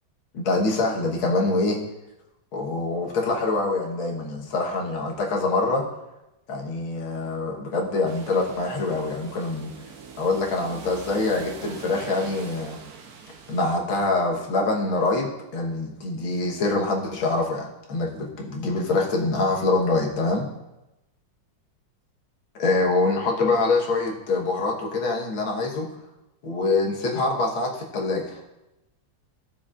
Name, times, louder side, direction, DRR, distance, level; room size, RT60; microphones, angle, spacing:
voice 1, 0.3-1.8 2.5-5.9 6.5-9.7 10.2-12.8 13.5-20.5 22.6-25.9 26.4-28.4, left 3 dB, 90° left, -1 dB, 2.2 m, -25 dB
sound 1, 8.1-13.8, right 5 dB, 60° right, 1.2 m, -43 dB
15.0 x 6.8 x 2.5 m, 0.96 s
omnidirectional pair, 2.2 m